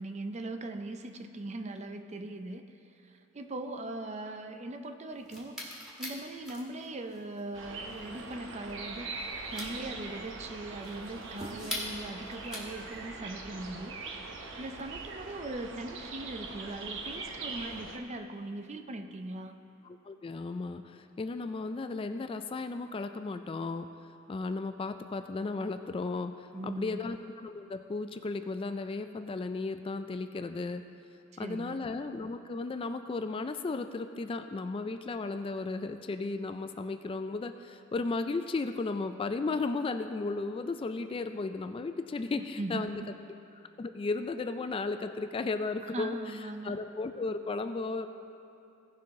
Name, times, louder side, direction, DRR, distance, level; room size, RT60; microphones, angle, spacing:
voice 1, 0.0-2.6 3.3-5.6 6.0-9.2 9.5-14.0 14.6-19.6 26.5-27.0 31.4-31.8 42.4-43.1 45.9-46.8, right 2 dB, 35° right, 7 dB, 0.5 m, -40 dB
sound 1, 5.1-13.0, left 1 dB, ahead, 1.7 m, -43 dB
sound 2, 7.5-18.0, right 3 dB, 65° right, 0.9 m, -42 dB
voice 2, 19.8-23.9 24.3-30.9 31.4-43.0 43.8-48.1, left 3 dB, 25° left, 8 dB, 0.3 m, -35 dB
17.0 x 5.7 x 3.7 m, 2.8 s
head